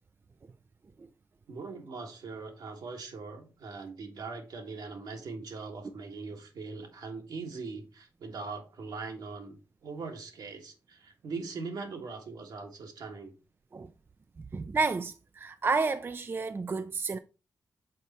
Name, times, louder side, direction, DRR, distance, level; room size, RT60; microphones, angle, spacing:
voice 1, 1.5-9.6 9.8-13.3, right 4 dB, 75° right, 1.5 m, -41 dB
voice 2, 14.5-17.2, right 4 dB, 35° right, 0.4 m, -30 dB
6.6 x 4.1 x 4.2 m
cardioid pair, 65°, 7 cm